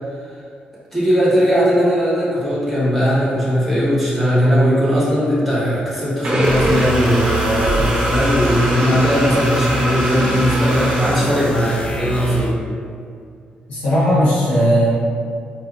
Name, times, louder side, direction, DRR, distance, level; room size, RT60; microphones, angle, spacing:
voice 1, 0.9-12.6, equal, 5° left, -10 dB, 1.1 m, -18 dB
sound 1, 6.2-11.8, right 1 dB, 45° right, 0.7 m, -22 dB
sound 2, 6.4-12.7, right 1 dB, 40° left, 0.4 m, -26 dB
voice 2, 13.7-14.9, equal, 80° left, -10 dB, 1.4 m, -16 dB
4.5 x 2.5 x 2.4 m, 2.3 s
wide cardioid pair, 145°, 3 cm